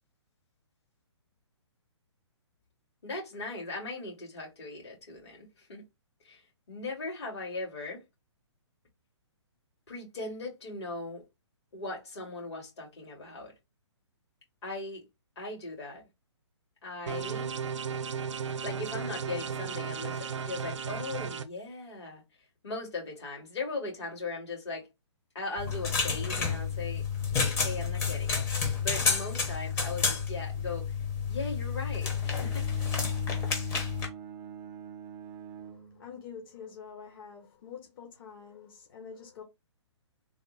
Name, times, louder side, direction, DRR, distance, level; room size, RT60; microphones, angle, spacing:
voice 1, 3.0-5.8 6.2-6.4 6.7-8.0 9.9-11.2 11.7-13.5 14.6-15.0 15.4-16.0 16.8-17.5 18.6-22.2 22.6-24.9 25.3-27.1 27.6-28.4 28.8-31.0 31.3-32.7, left 3 dB, 65° left, 2.3 m, -38 dB
sound 1, 17.1-21.4, right 6 dB, 80° right, 0.5 m, -35 dB
sound 2, 25.6-34.1, left 5 dB, 15° left, 0.7 m, -30 dB
Bowed string instrument, 32.2-36.5, right 8 dB, 15° right, 0.4 m, -45 dB
voice 2, 35.6-39.4, left 6 dB, 50° left, 1.1 m, -46 dB
3.5 x 2.1 x 3.9 m
hypercardioid pair, 145°, 15 cm